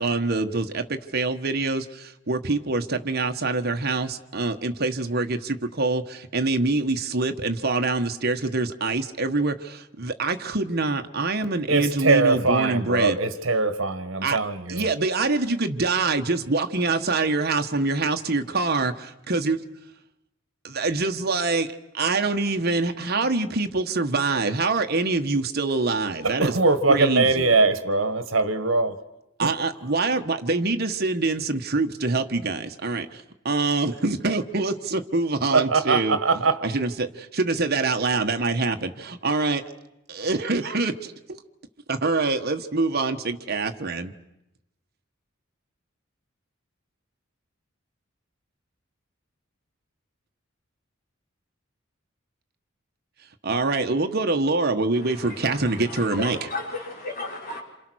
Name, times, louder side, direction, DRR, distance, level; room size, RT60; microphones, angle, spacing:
voice 1, 0.0-13.2 14.2-14.4 14.7-19.6 20.6-26.6 26.8-27.5 29.4-39.6 40.1-41.4 41.9-44.1 53.4-56.5, right 3 dB, 50° right, 1.3 m, -25 dB
voice 2, 11.7-14.9 26.2-29.0 29.4-29.5 35.5-36.7, right 3 dB, 70° right, 1.5 m, -22 dB
voice 3, 55.2-55.6 55.9-57.6, left 2 dB, 45° left, 5.3 m, -34 dB
28.0 x 28.0 x 6.3 m
head